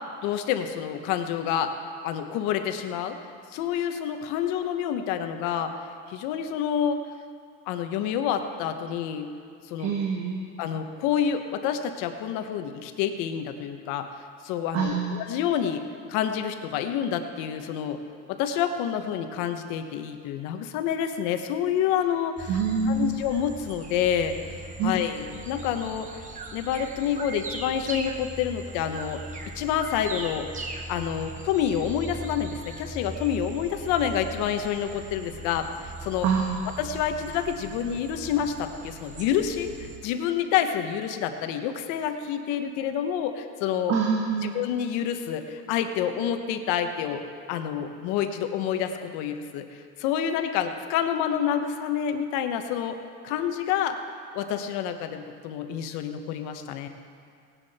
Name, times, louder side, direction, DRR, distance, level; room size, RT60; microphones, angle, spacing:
voice 1, 0.2-1.7 2.0-3.2 3.5-5.7 6.1-7.0 7.7-9.3 9.6-10.0 10.6-14.1 14.4-18.0 18.3-24.3 24.8-26.1 26.5-29.2 29.5-36.3 36.8-44.0 44.4-52.9 53.2-54.0 54.3-56.9, left 9 dB, 75° left, 7 dB, 1.2 m, -28 dB
voice 2, 9.8-10.4 14.7-15.1 22.5-23.1 24.8-25.0 36.2-36.6 43.9-44.6, right 5 dB, 50° right, 1 dB, 1.3 m, -25 dB
sound 1, 22.4-40.0, right 2 dB, 25° right, 1.1 m, -40 dB
18.0 x 10.0 x 4.3 m, 2.2 s
cardioid pair, 130°, 31 cm